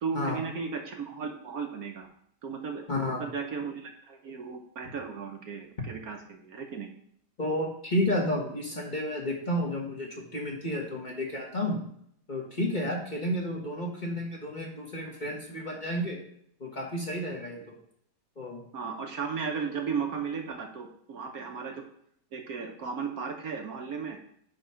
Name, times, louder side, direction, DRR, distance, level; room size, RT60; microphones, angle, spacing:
voice 1, 0.0-2.1 2.4-2.8 3.2-6.9 18.7-21.8 22.3-24.2, right 5 dB, 60° right, 3 dB, 1.2 m, -35 dB
voice 2, 2.9-3.2 7.4-11.8 12.3-16.2 16.6-17.8 18.4-18.6, left 1 dB, 30° left, -2 dB, 1.4 m, -31 dB
9.4 x 3.5 x 5.6 m, 0.68 s
omnidirectional pair, 1.9 m